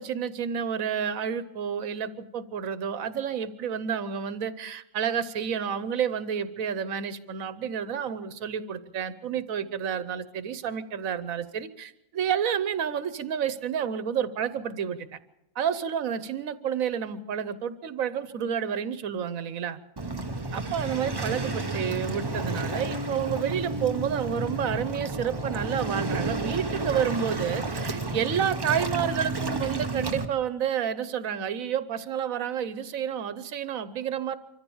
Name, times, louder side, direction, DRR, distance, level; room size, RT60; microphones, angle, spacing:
voice 1, 0.0-15.2 15.6-19.8 20.5-34.4, right 8 dB, 80° right, 14 dB, 1.3 m, -30 dB
Waves surf, 20.0-30.2, right 2 dB, 20° right, 0.9 m, -31 dB
25.0 x 14.5 x 7.1 m, 0.87 s
omnidirectional pair, 1.4 m